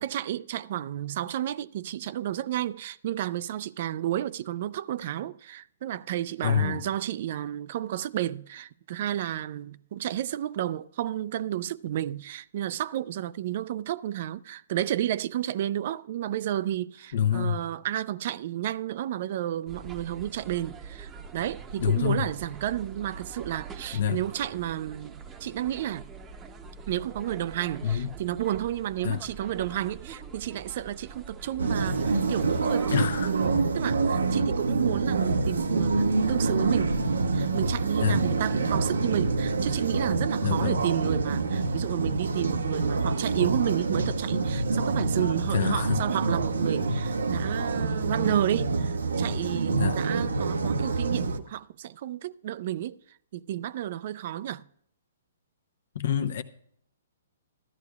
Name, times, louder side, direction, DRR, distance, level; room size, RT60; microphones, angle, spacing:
voice 1, 0.0-26.1 26.9-37.0 37.3-53.0 53.3-54.6, right 12 dB, 50° right, 0.3 m, -31 dB
voice 2, 6.4-6.8 17.1-17.6 21.8-22.3 23.9-24.2 27.8-28.1 29.0-29.2 32.9-33.3 38.0-38.2 40.4-40.8 45.5-46.0 49.7-50.0 55.9-56.4, left 8 dB, 65° left, 0.7 m, -26 dB
sound 1, 19.7-33.5, right 5 dB, 20° right, 0.7 m, -44 dB
sound 2, 31.6-51.4, right 3 dB, 90° right, 0.7 m, -26 dB
14.0 x 12.0 x 2.3 m
hypercardioid pair, 140°, 0 cm